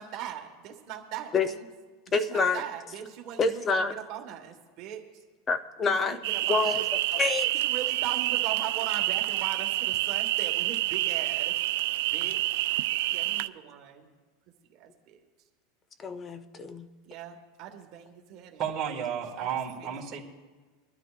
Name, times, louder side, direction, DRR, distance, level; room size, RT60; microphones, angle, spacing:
voice 1, 0.0-1.6 2.1-5.0 6.0-6.2 6.5-6.8 7.5-11.5 12.1-12.4 13.1-14.1 14.8-15.2 17.0-18.6 18.9-19.5 19.8-20.0, right 10 dB, 45° right, 2 dB, 1.4 m, -40 dB
voice 2, 2.1-2.6 3.4-3.9 5.5-6.2 6.5-6.9 7.1-7.5 16.0-16.9, left 4 dB, 20° left, 10 dB, 0.7 m, -27 dB
sound 1, 6.2-13.5, right 17 dB, 70° right, 0.4 m, -28 dB
voice 3, 18.6-20.2, right 8 dB, 30° right, -4 dB, 1.9 m, -32 dB
23.0 x 12.0 x 2.5 m, 1.4 s
supercardioid pair, 150°, 0 cm